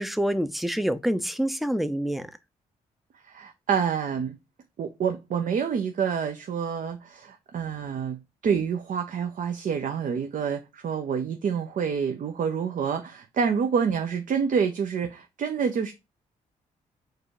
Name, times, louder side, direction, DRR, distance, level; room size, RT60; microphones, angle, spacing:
voice 1, 0.0-2.3, equal, ahead, 0.5 m, -26 dB
voice 2, 3.2-4.4 4.8-15.9, right 6 dB, 55° right, 0.6 m, -27 dB
4.6 x 2.4 x 4.7 m
supercardioid pair, 55°, 16 cm